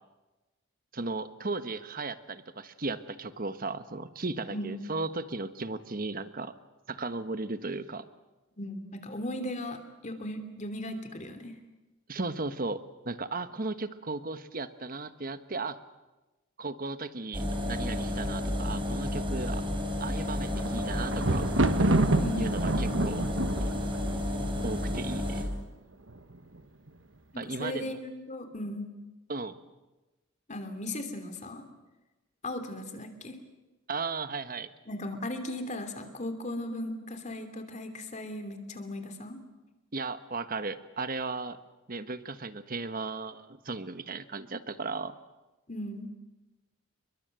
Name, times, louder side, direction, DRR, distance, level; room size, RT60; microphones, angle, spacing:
voice 1, 0.9-6.5 6.9-8.0 12.1-15.8 16.6-19.6 20.0-21.5 22.4-23.2 24.6-25.5 27.4-28.0 29.3-29.6 33.9-34.7 39.9-41.6 41.9-45.2, right 3 dB, 45° right, 11 dB, 1.3 m, -36 dB
voice 2, 4.5-4.8 8.6-11.5 22.2-22.6 27.3-28.9 30.5-31.6 32.4-33.4 34.9-39.4 45.7-46.1, left 1 dB, 35° left, 8 dB, 3.0 m, -37 dB
sound 1, 17.3-25.4, left 1 dB, 25° right, 4.5 m, -31 dB
Thunder, 20.2-25.4 26.1-26.6 26.9-27.0, right 2 dB, 65° right, 1.3 m, -28 dB
29.0 x 23.0 x 7.8 m, 1.1 s
head